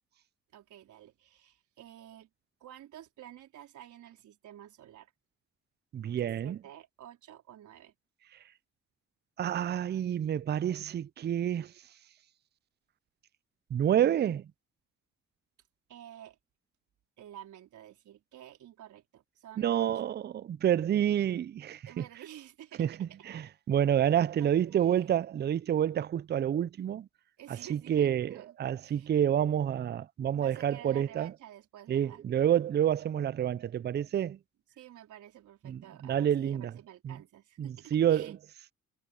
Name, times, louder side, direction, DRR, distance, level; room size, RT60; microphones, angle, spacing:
voice 1, 0.5-2.3 2.6-5.1 6.4-7.9 15.9-16.4 17.2-19.9 21.9-23.2 24.4-25.2 27.4-28.5 28.8-29.1 30.4-32.2 34.1-34.3 34.8-38.4, right 11 dB, 75° right, 4.4 m, -51 dB
voice 2, 5.9-6.6 9.4-11.7 13.7-14.4 19.6-22.0 22.8-27.1 27.7-31.3 31.9-34.4 35.6-36.7 37.0-37.1 37.6-38.4, right 10 dB, 35° right, 0.4 m, -28 dB
cardioid pair, 90°, 30 cm